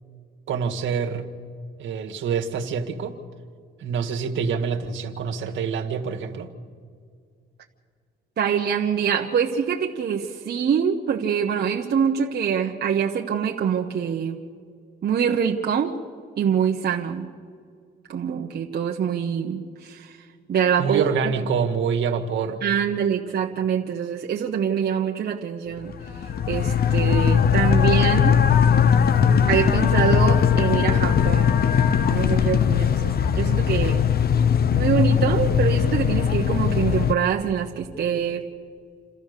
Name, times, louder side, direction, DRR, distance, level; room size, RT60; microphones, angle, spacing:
voice 1, 0.5-1.3 1.8-3.2 3.8-6.5 20.8-22.6, right 6 dB, 75° right, 3 dB, 1.9 m, -26 dB
voice 2, 8.4-14.4 15.0-16.0 16.4-17.3 18.1-20.2 20.5-21.0 22.6-25.9 26.5-28.4 29.5-31.7 32.1-34.0 34.7-38.5, right 8 dB, 55° right, 1 dB, 1.2 m, -24 dB
sound 1, 25.9-37.1, left 8 dB, 50° left, 0.9 m, -19 dB
28.5 x 14.0 x 6.8 m, 2.1 s
cardioid pair, 90°, 20 cm